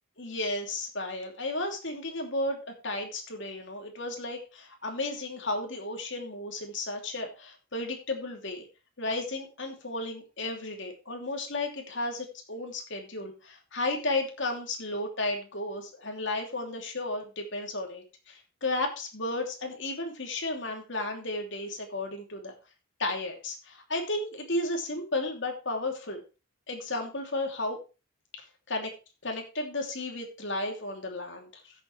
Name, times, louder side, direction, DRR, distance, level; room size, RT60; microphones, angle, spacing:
voice 1, 0.2-8.6 9.0-22.5 23.0-26.2 26.7-27.8 28.7-28.9 29.2-31.7, left 2 dB, 55° left, 3 dB, 2.9 m, -33 dB
15.5 x 7.2 x 3.3 m, 0.31 s
head